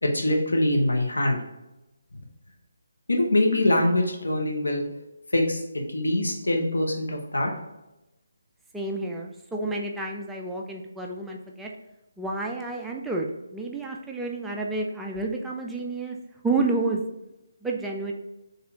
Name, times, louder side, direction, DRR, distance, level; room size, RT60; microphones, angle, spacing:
voice 1, 0.0-1.4 2.1-2.2 3.1-4.8 5.3-5.6 5.9-7.5, left 1 dB, 90° left, 1 dB, 1.0 m, -23 dB
voice 2, 8.7-11.7 12.2-13.3 13.5-16.2 16.4-17.0 17.6-18.1, right 3 dB, 5° right, 0 dB, 0.4 m, -30 dB
4.0 x 3.3 x 2.8 m, 0.95 s
figure-of-eight pair, 155°, 0 cm